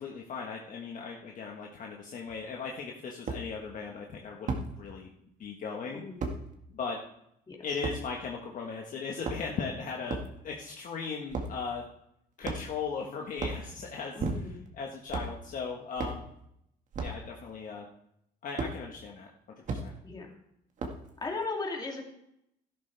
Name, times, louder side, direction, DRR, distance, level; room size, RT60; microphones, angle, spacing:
voice 1, 0.0-5.1 5.4-6.0 6.7-7.0 7.6-10.2 10.4-11.8 12.4-14.2 14.7-16.2 17.0-17.8 18.4-19.3 19.7-19.9, left 5 dB, 50° left, -1 dB, 1.4 m, -37 dB
sound 1, 2.3-2.4 3.3-3.4 4.5-4.7 6.2-6.4 7.8-8.0 9.1-9.6 10.1-10.3 11.3-11.6 12.4-12.8 13.3-13.6 14.2-14.7 15.1-15.3 16.0-16.2 16.9-17.2 18.6-18.7 19.7-19.8 20.8-21.1, right 3 dB, 45° right, 1.8 m, -33 dB
voice 2, 14.1-14.6 20.0-20.3 21.2-22.0, left 3 dB, 25° left, -1 dB, 2.8 m, -36 dB
12.5 x 11.5 x 3.4 m, 0.77 s
cardioid pair, 110°, 17 cm